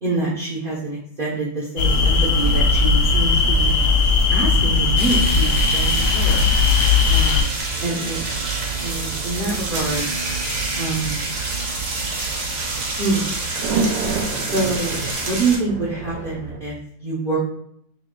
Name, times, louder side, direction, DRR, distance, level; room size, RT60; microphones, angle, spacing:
voice 1, 0.0-3.8 4.3-6.5 7.1-7.6 7.8-8.2 8.8-10.1 10.8-11.4 13.0-13.4 14.5-17.4, right 3 dB, 45° right, -6 dB, 0.7 m, -26 dB
sound 1, 1.8-7.4, left 5 dB, 70° left, 0.9 m, -18 dB
sound 2, 1.8-16.6, right 6 dB, 80° right, 1.1 m, -29 dB
sound 3, 5.0-15.6, right 2 dB, 60° right, 1.2 m, -28 dB
3.1 x 2.8 x 3.7 m, 0.68 s
omnidirectional pair, 1.7 m